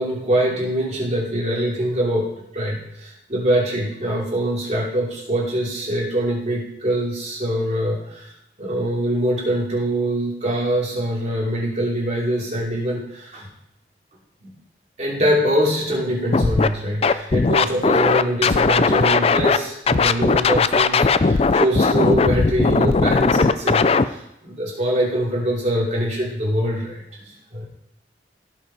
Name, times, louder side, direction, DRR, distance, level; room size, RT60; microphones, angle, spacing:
voice 1, 0.0-8.2 8.6-13.5 14.4-14.5 15.0-23.8 24.4-26.9 27.5-27.7, equal, 40° right, -4 dB, 3.1 m, -23 dB
Scratching (performance technique), 16.3-16.7 17.0-19.6 19.9-24.0, left 4 dB, 35° left, 0.4 m, -17 dB
16.5 x 5.9 x 4.3 m, 0.84 s
head